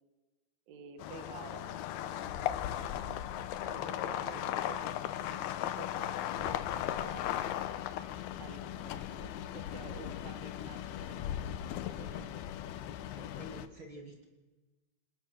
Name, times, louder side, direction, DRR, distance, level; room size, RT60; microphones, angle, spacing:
voice 1, 0.7-3.1 3.6-7.4 8.4-12.2, right 6 dB, 70° right, 7 dB, 4.4 m, -51 dB
sound 1, 1.0-13.7, left 11 dB, 90° left, 2.2 m, -37 dB
sound 2, 2.2-4.8, left 4 dB, 70° left, 6.9 m, -52 dB
voice 2, 8.7-9.1 12.1-12.3 13.1-14.2, right 1 dB, 35° right, 1 dB, 2.6 m, -50 dB
28.5 x 26.0 x 6.3 m, 1.2 s
omnidirectional pair, 5.8 m